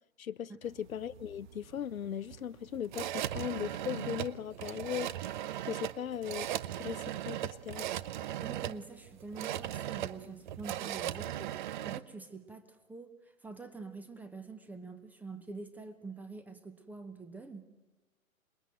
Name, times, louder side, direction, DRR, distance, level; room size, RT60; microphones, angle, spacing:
voice 1, 0.2-5.1 5.6-6.5 6.8-7.9, left 9 dB, 75° left, 0.8 m, -38 dB
sound 1, 0.6-12.0, right 12 dB, 35° right, 0.8 m, -38 dB
voice 2, 8.2-17.7, right 3 dB, 5° right, 0.9 m, -46 dB
26.5 x 21.5 x 9.2 m
hypercardioid pair, 135°, 42 cm